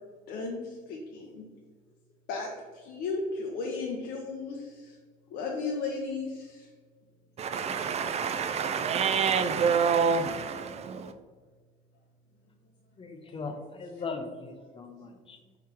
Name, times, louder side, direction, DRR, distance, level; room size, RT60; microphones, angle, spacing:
voice 1, 0.3-1.4 2.3-5.0 5.3-6.7 13.2-13.3, left 4 dB, 80° left, -1 dB, 0.7 m, -35 dB
voice 2, 7.4-11.1, right 6 dB, 40° right, 8 dB, 0.4 m, -27 dB
voice 3, 13.0-15.6, left 4 dB, 30° left, 4 dB, 0.6 m, -39 dB
4.7 x 3.7 x 2.9 m, 1.5 s
cardioid pair, 110°, 17 cm